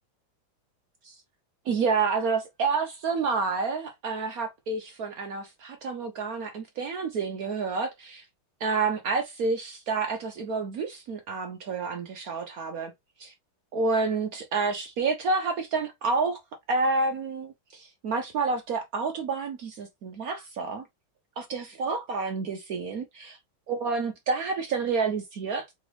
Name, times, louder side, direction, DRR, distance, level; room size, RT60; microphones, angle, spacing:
voice 1, 1.7-8.3 8.6-12.9 13.2-13.3 13.7-16.4 16.7-20.8 21.4-23.4 23.7-25.7, right 4 dB, 65° right, 0.9 m, -29 dB
3.9 x 3.8 x 3.1 m
omnidirectional pair, 2.3 m